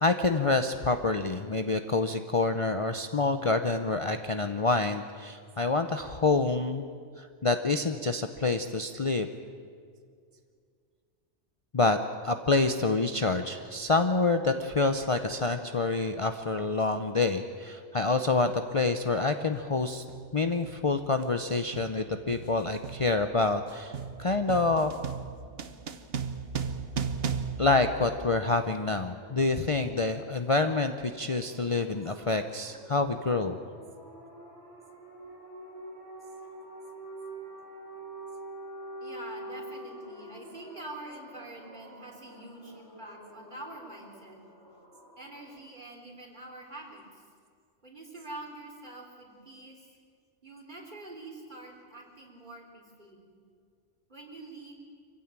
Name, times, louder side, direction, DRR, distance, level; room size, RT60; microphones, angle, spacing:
voice 1, 0.0-6.8 7.2-9.3 11.7-12.0 12.2-20.0 20.3-23.9 24.2-24.9 27.6-33.6, left 3 dB, 35° left, 7 dB, 0.7 m, -27 dB
sound 1, 18.5-18.6 19.5-19.8 20.1-28.6, right 6 dB, 60° right, 1.2 m, -37 dB
sound 2, 31.0-45.6, right 1 dB, 15° left, 5.6 m, -46 dB
voice 2, 39.0-44.4 45.2-47.2 47.8-49.9 50.4-53.3 54.1-54.7, right 2 dB, 40° right, 1 dB, 3.6 m, -45 dB
24.5 x 15.5 x 9.0 m, 2.2 s
omnidirectional pair, 1.2 m